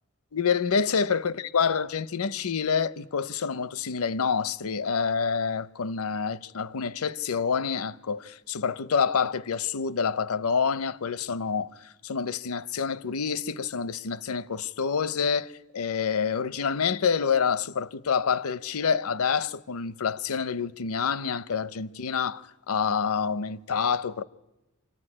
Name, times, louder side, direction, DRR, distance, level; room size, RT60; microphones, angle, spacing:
voice 1, 0.3-24.2, left 6 dB, 80° left, 0.7 m, -27 dB
25.5 x 14.0 x 9.8 m
head